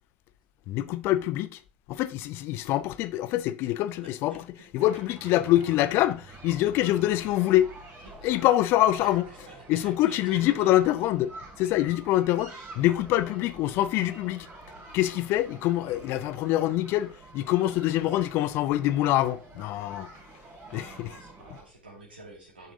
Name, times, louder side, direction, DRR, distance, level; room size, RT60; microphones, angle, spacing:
voice 1, 0.7-1.6 1.9-4.3 4.7-7.7 8.2-9.3 9.7-11.3 11.6-12.5 12.8-14.5 14.9-20.1 20.7-20.9, left 14 dB, 50° left, 0.7 m, -25 dB
voice 2, 4.0-4.6 5.2-5.4 8.0-8.5 9.0-10.8 20.7-22.7, right 2 dB, 80° right, 2.5 m, -48 dB
sound 1, 4.8-21.6, right 3 dB, 35° right, 2.8 m, -48 dB
9.5 x 6.1 x 3.6 m
figure-of-eight pair, 75°, 5 cm